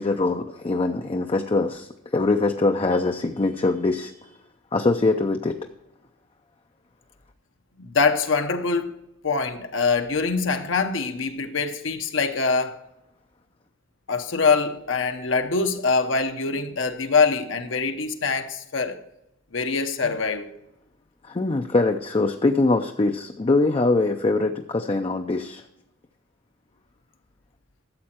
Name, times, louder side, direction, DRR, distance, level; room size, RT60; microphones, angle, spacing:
voice 1, 0.0-4.4 4.7-5.6 20.0-20.2 21.2-25.6, left 3 dB, 25° left, 0.5 m, -23 dB
voice 2, 7.8-8.9 9.2-12.8 14.1-19.0 19.5-20.5, left 4 dB, 65° left, 0.9 m, -24 dB
13.0 x 7.6 x 4.4 m
head